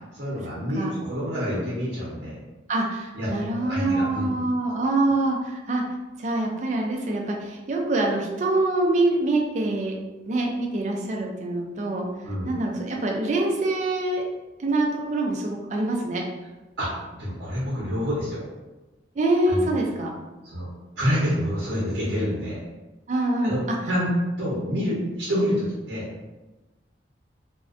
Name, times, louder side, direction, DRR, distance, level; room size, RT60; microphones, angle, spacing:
voice 1, 0.1-2.4 3.1-3.3 3.5-4.3 12.2-12.5 16.8-16.9 17.2-18.4 19.5-19.7 20.4-20.7 21.0-22.6 23.4-23.6 23.9-24.1 24.4-26.1, equal, 70° right, -7 dB, 0.7 m, -27 dB
voice 2, 2.7-5.8 6.2-10.0 10.3-12.1 12.5-14.2 14.6-16.2 19.2-20.1 23.1-23.8, right 2 dB, 40° right, 0 dB, 0.4 m, -25 dB
2.4 x 2.1 x 2.4 m, 1.1 s
head